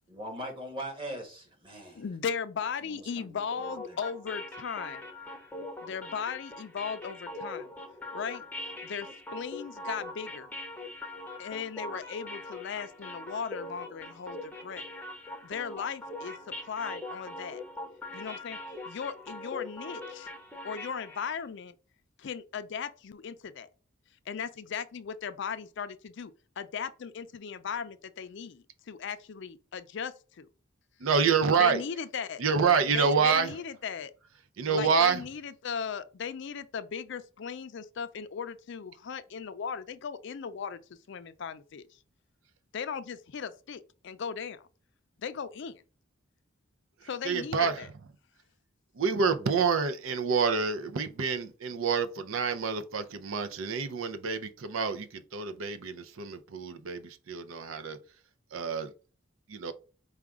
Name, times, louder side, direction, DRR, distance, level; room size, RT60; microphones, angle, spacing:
voice 1, 0.1-2.0 2.8-4.0, right 1 dB, 25° right, 1.2 m, -41 dB
voice 2, 1.9-5.0 5.8-7.7 8.1-8.4 8.8-10.5 11.4-14.9 15.4-17.6 18.1-18.6 18.9-20.3 20.6-21.7 22.2-23.7 24.3-30.5 31.6-32.4 32.9-34.1 34.7-40.8 41.1-41.8 42.7-44.7 45.2-45.8 47.1-47.9, left 6 dB, 60° left, 0.4 m, -37 dB
sound 1, 3.5-21.4, left 2 dB, 10° left, 0.6 m, -42 dB
voice 3, 31.0-31.8 32.4-33.5 34.6-35.2 47.0-47.9 49.0-58.0 58.5-58.9 59.5-59.7, right 5 dB, 80° right, 0.5 m, -27 dB
4.9 x 2.3 x 3.5 m
head